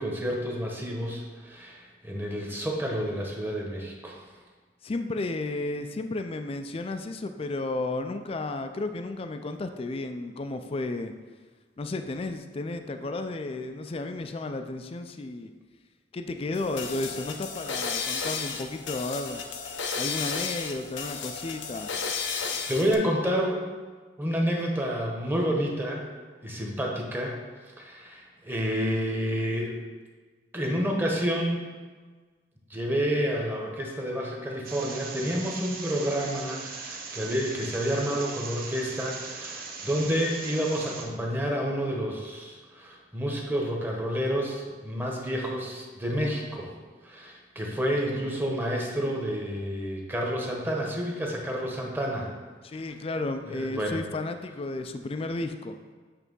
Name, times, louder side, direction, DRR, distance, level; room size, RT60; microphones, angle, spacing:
voice 1, 0.0-4.2 22.7-23.6 24.2-26.0 26.4-27.4 27.8-29.8 30.5-31.6 32.7-46.7 47.0-52.3 53.5-54.0, equal, 10° right, -1 dB, 1.0 m, -29 dB
voice 2, 4.8-11.1 11.8-15.5 16.1-19.4 19.9-21.9 52.6-55.8, left 2 dB, 30° left, 8 dB, 0.4 m, -33 dB
sound 1, 16.5-22.9, left 5 dB, 85° left, 0.7 m, -33 dB
sound 2, 34.6-41.0, right 4 dB, 50° right, 0.9 m, -39 dB
8.4 x 3.4 x 5.3 m, 1.4 s
head